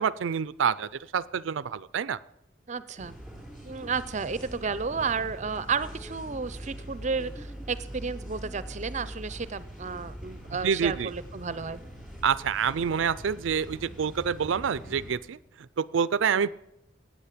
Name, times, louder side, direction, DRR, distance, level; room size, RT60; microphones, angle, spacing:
voice 1, 0.0-2.2 10.6-11.1 12.2-15.4 15.8-16.5, right 7 dB, 90° right, 18 dB, 0.4 m, -27 dB
voice 2, 2.7-3.1 3.6-11.8 16.3-16.5, right 5 dB, 40° right, 16 dB, 0.6 m, -32 dB
sound 1, 3.0-15.2, equal, ahead, 4.2 m, -42 dB
16.0 x 8.6 x 8.4 m, 0.82 s
head